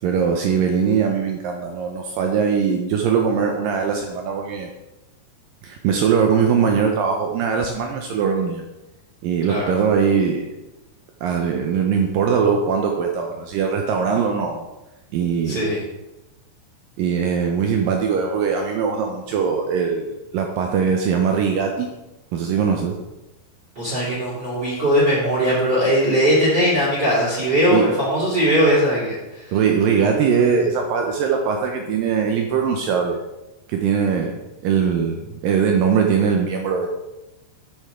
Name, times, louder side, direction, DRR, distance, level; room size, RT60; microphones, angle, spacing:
voice 1, 0.0-4.7 5.6-8.6 9.2-10.5 11.2-14.7 15.1-15.6 17.0-21.9 22.3-23.0 27.7-27.9 29.5-33.2 33.7-34.4 34.6-36.9, right 6 dB, 90° right, 2 dB, 2.0 m, -21 dB
voice 2, 15.5-15.8 23.7-29.4, equal, 30° right, -7 dB, 2.9 m, -19 dB
10.0 x 8.4 x 3.7 m, 1.0 s
omnidirectional pair, 5.0 m